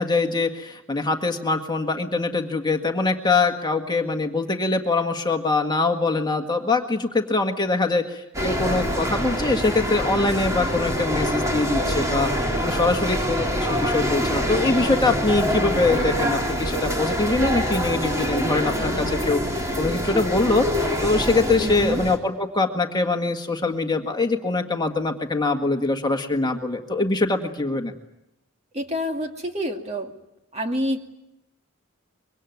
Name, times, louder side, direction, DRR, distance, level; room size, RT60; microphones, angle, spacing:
voice 1, 0.0-27.9, left 3 dB, 20° left, 4 dB, 1.7 m, -23 dB
sound 1, 8.3-22.2, equal, 15° right, 3.6 m, -25 dB
voice 2, 21.6-22.1 28.7-30.1 30.5-31.0, equal, 30° right, 4 dB, 2.4 m, -27 dB
25.0 x 23.5 x 9.4 m, 0.87 s
head